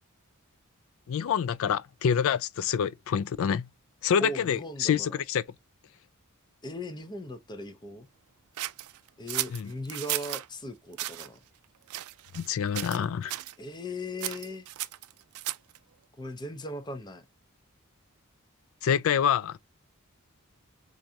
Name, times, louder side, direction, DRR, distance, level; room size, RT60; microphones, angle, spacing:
voice 1, 1.1-3.7 4.0-5.4 9.5-9.7 12.3-13.3 18.8-19.6, left 8 dB, 65° left, 0.3 m, -27 dB
voice 2, 4.2-5.2 6.6-8.1 9.2-11.4 13.6-14.7 16.2-17.2, left 1 dB, 20° left, 0.6 m, -38 dB
sound 1, 8.6-10.5 10.9-11.3 11.9-12.5 12.7-13.0 13.3-13.5 14.2-15.8, right 16 dB, 85° right, 0.4 m, -34 dB
4.5 x 2.5 x 2.7 m
head